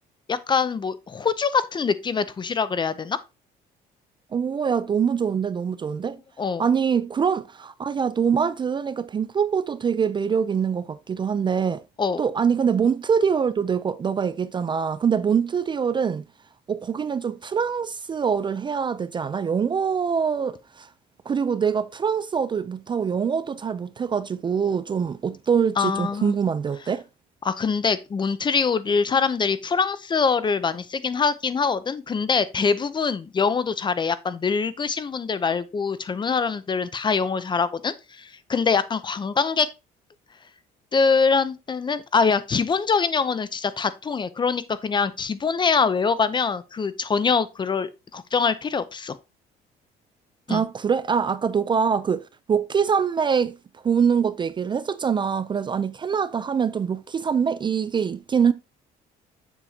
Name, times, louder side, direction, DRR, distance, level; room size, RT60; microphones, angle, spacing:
voice 1, 0.3-3.2 6.4-6.6 12.0-12.2 25.8-26.3 27.4-39.7 40.9-49.2 50.5-50.6, left 5 dB, 25° left, 0.6 m, -24 dB
voice 2, 4.3-6.2 6.6-11.8 12.2-16.3 16.7-20.9 21.3-27.0 50.5-53.6 53.8-58.5, right 6 dB, 30° right, 0.4 m, -24 dB
7.0 x 6.9 x 2.8 m
cardioid pair, 110°, 17 cm